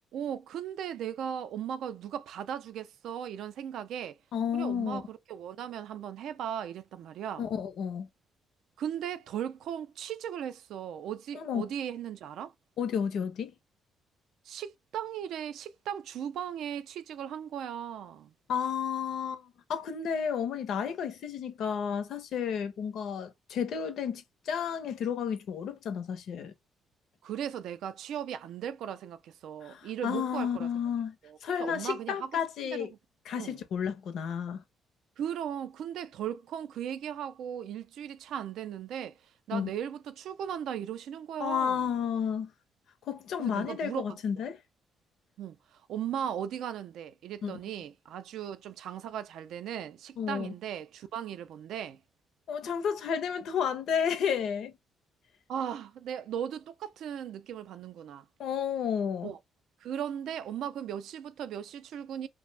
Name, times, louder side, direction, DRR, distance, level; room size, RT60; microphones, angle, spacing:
voice 1, 0.1-4.2 4.5-7.5 8.8-12.5 14.5-18.3 27.2-30.7 31.2-32.3 32.7-32.9 33.3-33.6 35.2-39.2 39.5-41.9 43.4-44.2 45.4-52.0 55.5-58.3 59.2-59.4 59.8-62.3, right 9 dB, 70° right, 0.3 m, -37 dB
voice 2, 4.3-5.0 7.4-8.1 11.3-11.7 12.8-13.5 18.5-26.5 29.6-32.9 33.3-34.6 39.5-39.7 41.4-42.5 43.1-44.6 47.4-47.6 50.2-50.5 52.5-54.7 58.4-59.3, left 7 dB, 60° left, 0.5 m, -32 dB
2.5 x 2.0 x 3.2 m
cardioid pair, 155°, 0 cm